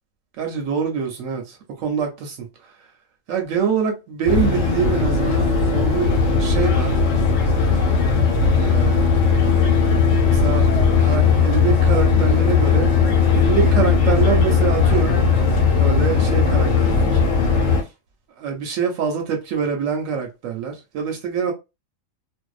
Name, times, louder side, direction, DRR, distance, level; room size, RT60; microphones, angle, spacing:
voice 1, 0.4-2.4 3.3-6.9 8.6-9.1 10.3-10.7 11.0-12.9 13.4-15.2 15.8-17.2 18.4-21.5, right 7 dB, 75° right, 0.9 m, -25 dB
sound 1, 4.3-17.8, left 5 dB, 70° left, 1.0 m, -17 dB
2.6 x 2.1 x 2.3 m
omnidirectional pair, 1.4 m